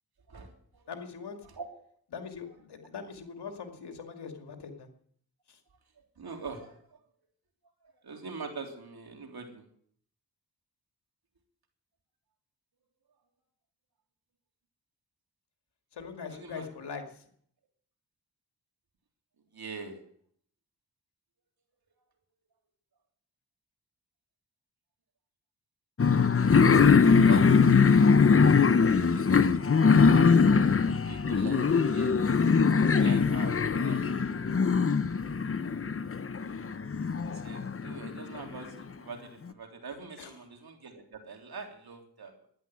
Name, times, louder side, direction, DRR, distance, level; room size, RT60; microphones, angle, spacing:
voice 1, 0.3-0.8 1.4-1.7 6.2-7.0 8.0-9.7 16.3-16.7 19.5-20.0 26.4-28.1 31.0-32.2 32.9-34.0 34.5-34.9 37.3-42.5, right 4 dB, 65° right, 3 dB, 3.4 m, -43 dB
voice 2, 0.9-1.4 2.1-4.9 5.5-5.6 15.9-17.3 40.2-40.3, left 5 dB, 80° left, 5 dB, 2.4 m, -41 dB
sound 1, 26.0-38.4, left 5 dB, 35° left, 0.8 m, -22 dB
12.0 x 10.5 x 9.3 m, 0.62 s
cardioid pair, 55°, 39 cm